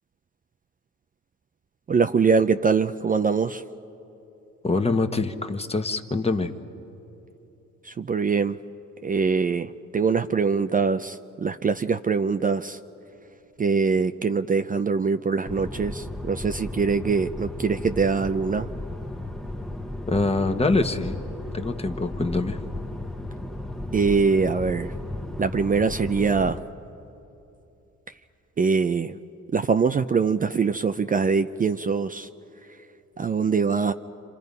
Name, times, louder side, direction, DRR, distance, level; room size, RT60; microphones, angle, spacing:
voice 1, 1.9-3.6 7.8-8.6 9.0-12.8 13.6-18.7 23.9-24.9 25.4-26.6 28.6-29.2 29.5-32.3 32.7-32.8 33.2-33.9, right 5 dB, 30° right, 9 dB, 0.5 m, -23 dB
voice 2, 4.6-6.5 20.1-21.2 21.5-22.6, left 3 dB, 20° left, 7 dB, 1.3 m, -24 dB
sound 1, 15.5-26.6, left 1 dB, ahead, 1.1 m, -34 dB
29.5 x 25.5 x 5.4 m, 2.9 s
cardioid pair, 90°, 30 cm